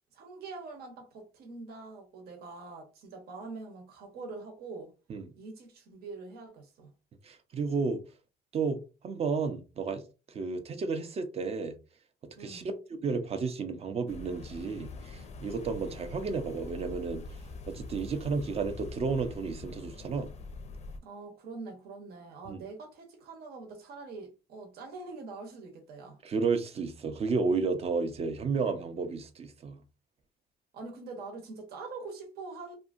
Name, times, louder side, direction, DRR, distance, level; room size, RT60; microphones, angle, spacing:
voice 1, 0.1-4.9 5.4-6.9 12.3-12.8 21.0-26.2 30.7-32.8, right 3 dB, 70° right, 0.9 m, -44 dB
voice 2, 7.2-8.0 8.5-10.0 10.3-11.8 12.4-17.3 17.7-20.3 22.5-22.6 26.2-29.8, right 4 dB, 35° right, 0.6 m, -32 dB
sound 1, 14.1-21.0, left 3 dB, 40° left, 0.5 m, -44 dB
2.6 x 2.6 x 2.4 m
cardioid pair, 110°, 17 cm